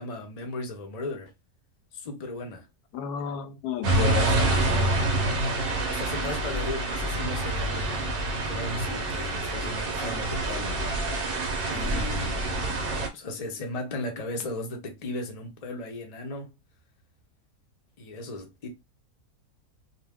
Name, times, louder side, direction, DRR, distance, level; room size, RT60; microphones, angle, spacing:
voice 1, 0.0-1.3 1.9-2.6 5.8-11.3 11.6-12.4 13.1-16.5 18.0-18.7, left 2 dB, 45° left, 0.5 m, -36 dB
voice 2, 2.9-5.0 6.2-6.4, left 9 dB, 80° left, 1.1 m, -33 dB
sound 1, 3.8-13.1, right 2 dB, 55° right, 0.6 m, -27 dB
2.7 x 2.3 x 3.4 m
omnidirectional pair, 1.7 m